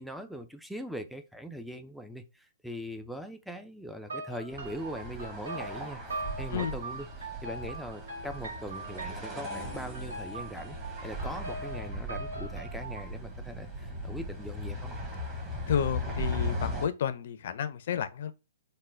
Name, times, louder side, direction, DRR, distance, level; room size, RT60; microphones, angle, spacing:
voice 1, 0.0-6.0 6.4-10.8 11.0-14.9, equal, ahead, 0.4 m, -41 dB
sound 1, 4.0-13.1, right 2 dB, 80° right, 1.1 m, -41 dB
sound 2, 4.5-16.9, equal, 15° right, 1.2 m, -38 dB
voice 2, 15.7-18.3, left 8 dB, 60° left, 0.5 m, -31 dB
3.7 x 2.2 x 3.2 m
hypercardioid pair, 125°, 0 cm